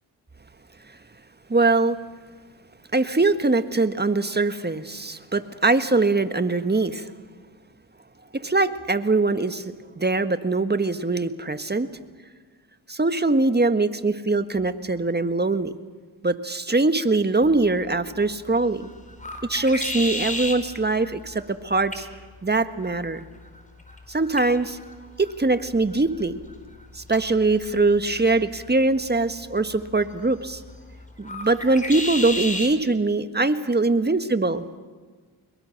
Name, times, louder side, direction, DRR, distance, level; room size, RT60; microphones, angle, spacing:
voice 1, 1.5-2.0 2.9-7.1 8.3-11.9 12.9-15.7 16.2-18.9 19.5-22.0 22.4-23.2 24.1-24.8 25.2-26.4 26.9-30.6 31.2-34.6, right 3 dB, 20° right, 10 dB, 1.6 m, -22 dB
sound 1, 17.4-32.8, left 1 dB, 15° left, 5.1 m, -36 dB
25.5 x 22.0 x 6.7 m, 1.4 s
supercardioid pair, 55°, 47 cm